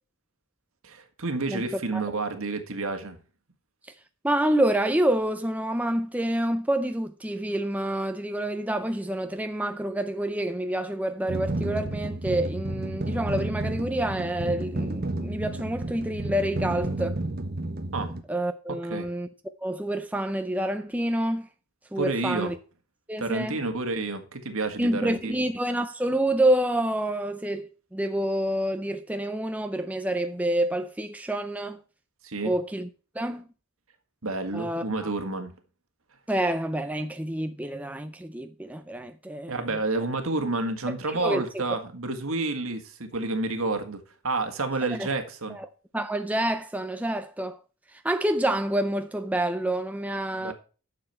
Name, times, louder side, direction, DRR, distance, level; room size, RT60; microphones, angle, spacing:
voice 1, 0.8-3.2 17.9-18.1 18.9-19.1 22.0-22.5 23.2-25.3 32.2-32.5 34.2-35.5 39.5-45.6 50.3-50.5, right 3 dB, 70° right, 1.8 m, -29 dB
voice 2, 4.2-17.2 18.3-19.3 19.6-21.5 21.9-22.5 23.1-23.6 24.8-31.8 32.4-32.9 33.2-33.4 34.5-35.1 36.3-39.6 41.1-41.6 45.0-45.1 45.5-45.7 45.9-47.6 47.9-50.5, right 1 dB, 5° right, 0.5 m, -28 dB
sound 1, 11.3-18.2, right 2 dB, 45° right, 1.2 m, -31 dB
11.5 x 7.0 x 4.4 m
head